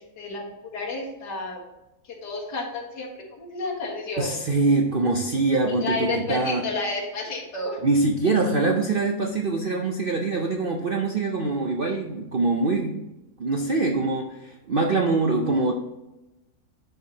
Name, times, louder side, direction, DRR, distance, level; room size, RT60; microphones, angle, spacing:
voice 1, 0.0-1.7 2.2-4.4 5.8-7.8, left 3 dB, 90° left, -3 dB, 2.2 m, -31 dB
voice 2, 4.2-6.7 7.8-13.1 13.4-15.7, right 3 dB, 60° right, 1 dB, 0.5 m, -24 dB
10.5 x 4.6 x 2.8 m, 0.98 s
omnidirectional pair, 1.7 m